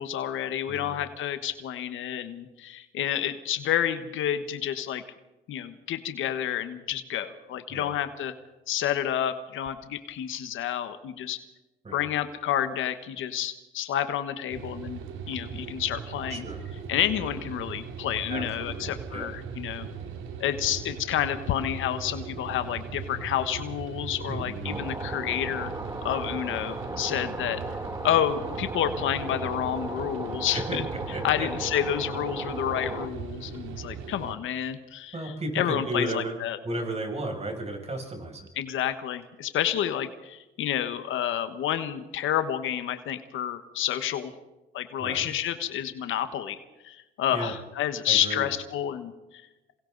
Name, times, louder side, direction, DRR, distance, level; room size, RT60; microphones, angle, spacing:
voice 1, 0.0-5.0 5.5-8.3 8.7-11.4 11.9-15.0 15.3-16.4 16.9-19.9 20.4-25.7 26.0-27.6 28.0-30.8 31.2-36.6 38.6-44.3 44.7-46.6 46.8-49.4, left 10 dB, 80° left, 10 dB, 1.4 m, -29 dB
voice 2, 0.7-1.0 7.7-7.9 11.8-12.1 16.3-16.6 18.3-19.3 24.3-24.9 30.5-30.8 31.1-31.5 35.1-36.4 36.6-38.5 45.0-45.3 47.3-47.5 48.1-48.5, right 1 dB, 30° right, 1 dB, 7.0 m, -34 dB
sound 1, 14.5-34.3, right 6 dB, 85° right, 2.6 m, -39 dB
sound 2, 24.7-33.1, right 1 dB, 15° right, 2.4 m, -36 dB
27.5 x 24.5 x 4.1 m, 1.0 s
cardioid pair, 90°, 20 cm